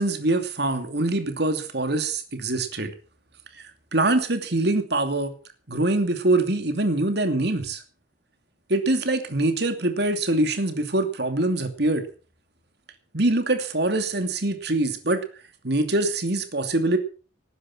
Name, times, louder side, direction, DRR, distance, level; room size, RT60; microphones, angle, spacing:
voice 1, 0.0-2.9 3.9-5.3 5.7-7.8 8.7-12.0 13.1-15.2 15.6-17.0, right 2 dB, 55° right, 7 dB, 2.7 m, -24 dB
19.0 x 10.0 x 6.0 m, 0.38 s
head